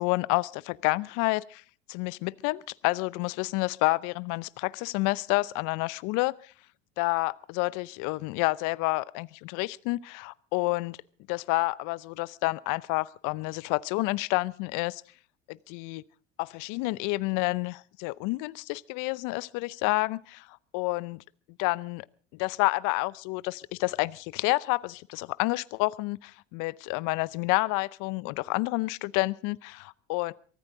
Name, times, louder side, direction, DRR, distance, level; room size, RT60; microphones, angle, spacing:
voice 1, 0.0-1.6 1.9-6.5 7.0-11.0 11.3-15.0 15.5-16.0 16.4-21.2 21.6-22.1 22.3-30.3, left 23 dB, 55° left, 19 dB, 0.7 m, -29 dB
23.5 x 13.5 x 3.7 m, 0.42 s
hypercardioid pair, 75°, 37 cm